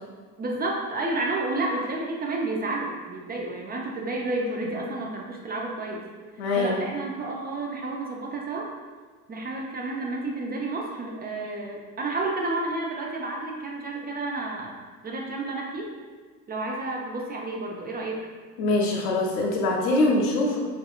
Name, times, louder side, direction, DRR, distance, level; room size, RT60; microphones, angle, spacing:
voice 1, 0.4-6.0 6.6-8.7 9.3-14.7 15.0-16.0 16.5-18.2, right 2 dB, 25° right, -1 dB, 0.4 m, -31 dB
voice 2, 6.4-6.8 18.6-20.6, left 2 dB, 75° left, 0 dB, 0.7 m, -23 dB
2.7 x 2.4 x 2.4 m, 1.5 s
hypercardioid pair, 65°, 40 cm